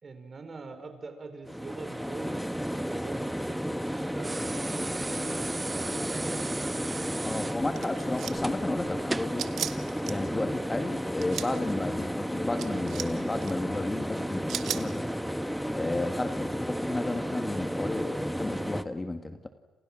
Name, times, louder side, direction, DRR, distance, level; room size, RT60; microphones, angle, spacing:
voice 1, 0.0-6.9, right 4 dB, 35° right, 7 dB, 4.8 m, -44 dB
sound 1, 1.5-18.8, equal, ahead, 1.2 m, -33 dB
sound 2, 4.2-9.4 10.8-10.9, right 3 dB, 20° right, 0.7 m, -37 dB
voice 2, 7.2-9.5 10.0-15.1 15.7-19.5, left 2 dB, 20° left, 7 dB, 1.8 m, -32 dB
sound 3, 7.8-8.5 9.4-10.1 11.1-11.5 12.6-13.1 13.4-13.5 14.5-14.8, right 9 dB, 70° right, 1.5 m, -34 dB
30.0 x 28.5 x 6.3 m, 1.3 s
cardioid pair, 90°, 0 cm